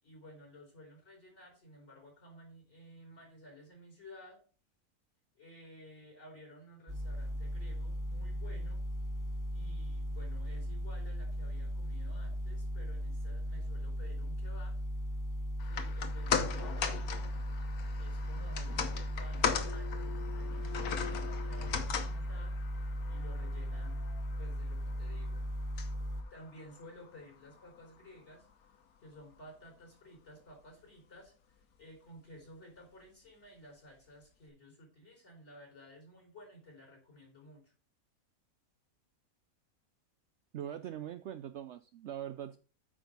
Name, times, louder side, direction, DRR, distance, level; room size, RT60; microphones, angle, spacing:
voice 1, 0.0-4.4 5.3-8.8 9.5-14.7 15.6-17.3 18.0-22.5 23.1-24.0 24.4-25.4 26.3-28.5 29.0-37.7, left 1 dB, 50° left, 0 dB, 4.7 m, -54 dB
sound 1, 6.9-26.2, equal, 15° right, 0.8 m, -37 dB
sound 2, 15.6-28.0 28.3-28.4, left 7 dB, 85° left, 1.4 m, -39 dB
voice 2, 40.5-42.6, right 10 dB, 65° right, 10 dB, 0.7 m, -42 dB
8.9 x 5.1 x 5.2 m, 0.37 s
omnidirectional pair, 1.5 m